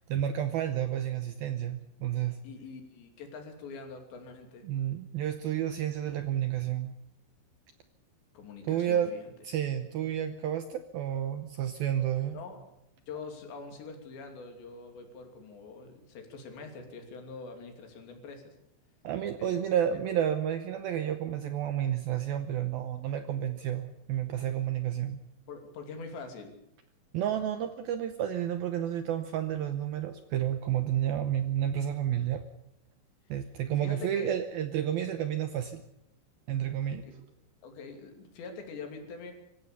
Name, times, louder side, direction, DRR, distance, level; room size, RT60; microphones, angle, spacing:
voice 1, 0.1-2.4 4.6-6.9 8.7-9.1 9.4-12.4 19.0-25.2 27.1-32.4 33.3-35.8 36.5-37.0, right 10 dB, 75° right, 8 dB, 2.2 m, -31 dB
voice 2, 2.4-4.7 8.3-9.3 12.3-12.6 13.1-18.5 19.4-19.6 25.5-26.5 33.8-34.3 34.9-35.1 37.0-37.1 37.6-39.3, left 4 dB, 70° left, 4 dB, 5.0 m, -44 dB
25.0 x 15.0 x 6.9 m, 0.84 s
omnidirectional pair, 5.3 m